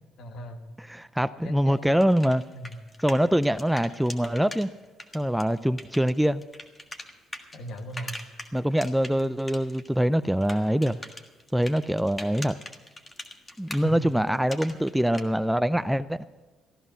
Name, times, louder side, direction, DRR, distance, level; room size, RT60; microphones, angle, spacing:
voice 1, 0.2-0.6 1.4-2.0 2.5-2.8 7.5-8.2 13.8-14.1, right 1 dB, 65° left, 6 dB, 1.6 m, -38 dB
voice 2, 0.9-2.4 3.0-4.7 5.1-6.4 8.5-11.0 11.5-12.6 13.6-16.2, equal, 5° right, 14 dB, 0.4 m, -24 dB
sound 1, 1.8-4.7 5.0-9.9 10.1-15.2, left 1 dB, 20° left, 1.6 m, -41 dB
15.0 x 11.0 x 6.2 m, 1.2 s
supercardioid pair, 75°, 0 cm